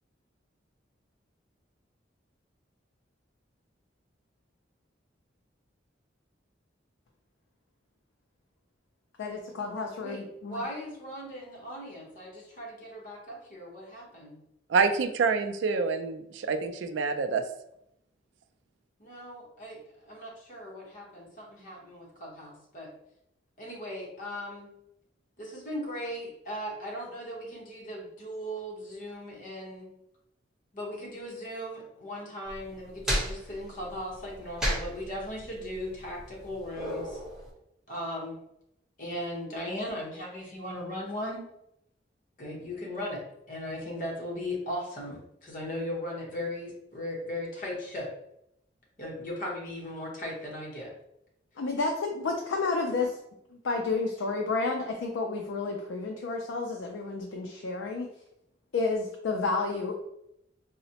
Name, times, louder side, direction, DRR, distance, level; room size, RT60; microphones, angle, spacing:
voice 1, 9.2-10.6 51.6-53.2 53.6-58.1 58.7-59.9, left 3 dB, 85° left, 1 dB, 0.4 m, -30 dB
voice 2, 10.0-14.4 19.0-19.8 20.1-22.9 23.6-24.7 25.4-29.9 30.7-37.2 37.9-38.4 39.0-41.4 42.4-48.1 49.0-50.9, left 1 dB, 45° left, -3 dB, 0.9 m, -38 dB
voice 3, 14.7-17.4, right 5 dB, 70° right, 7 dB, 0.3 m, -27 dB
sound 1, 32.5-37.5, equal, 5° right, 0.9 m, -34 dB
3.9 x 2.1 x 2.8 m, 0.80 s
head